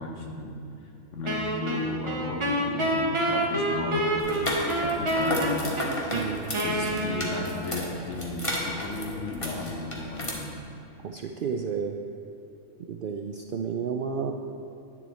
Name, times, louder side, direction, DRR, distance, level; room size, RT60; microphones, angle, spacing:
voice 1, 0.0-6.0 6.6-10.6, left 2 dB, 65° left, 1 dB, 1.5 m, -34 dB
Wind instrument woodwind instrument, 1.3-7.8, right 1 dB, 25° right, 0.8 m, -28 dB
sound 1, 4.2-10.3, left 1 dB, 25° left, 1.4 m, -33 dB
voice 2, 6.1-6.5 11.0-12.0 12.9-14.3, right 6 dB, 65° right, 3 dB, 0.5 m, -31 dB
10.0 x 9.2 x 4.1 m, 2.7 s
omnidirectional pair, 1.3 m